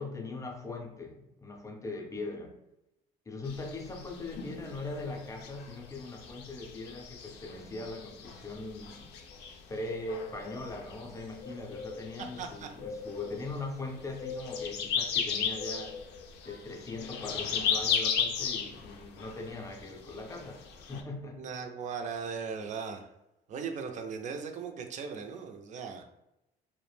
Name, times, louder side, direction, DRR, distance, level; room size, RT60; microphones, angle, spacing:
voice 1, 0.0-2.6 3.3-9.1 9.7-16.0 16.5-21.4, left 2 dB, 20° left, 2 dB, 0.5 m, -40 dB
sound 1, 3.5-21.0, left 6 dB, 80° left, 0.4 m, -36 dB
voice 2, 12.4-12.7 21.3-23.1 23.5-26.0, right 6 dB, 45° right, 5 dB, 0.4 m, -38 dB
2.4 x 2.1 x 3.2 m, 0.90 s
cardioid pair, 110°, 17 cm